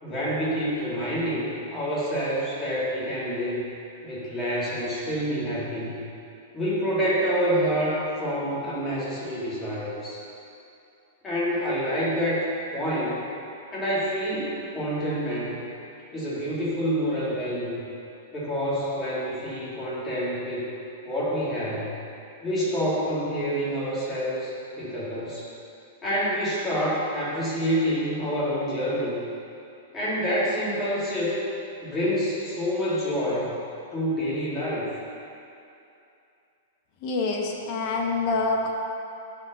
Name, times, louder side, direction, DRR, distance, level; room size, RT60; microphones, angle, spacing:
voice 1, 0.0-3.7 4.0-6.0 6.5-10.2 11.2-12.5 12.7-13.2 13.7-15.6 16.1-17.8 18.3-20.6 21.0-21.9 22.4-25.5 26.0-29.2 29.9-31.5 31.8-33.5 33.9-34.9, equal, 15° left, -8 dB, 1.7 m, -27 dB
voice 2, 37.0-38.7, left 3 dB, 40° left, 1 dB, 0.8 m, -26 dB
9.3 x 4.6 x 3.8 m, 2.7 s
supercardioid pair, 155°, 0 cm